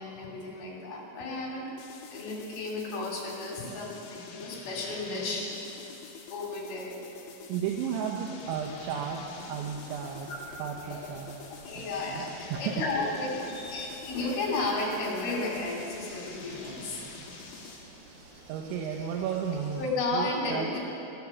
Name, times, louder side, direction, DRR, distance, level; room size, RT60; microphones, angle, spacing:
voice 1, 0.0-1.7 2.1-5.5 6.3-7.0 11.5-17.0 19.8-20.8, left 2 dB, 60° left, -2 dB, 4.3 m, -33 dB
sound 1, 1.8-18.0, left 5 dB, 75° left, 1.6 m, -47 dB
voice 2, 7.5-10.3 10.6-11.4 11.8-12.2 12.5-12.8 18.5-19.9 20.1-20.8, right 7 dB, 90° right, 0 dB, 3.3 m, -33 dB
sound 2, 8.4-19.9, right 2 dB, 65° right, 4.8 m, -52 dB
13.5 x 13.0 x 7.1 m, 3.0 s
omnidirectional pair, 5.2 m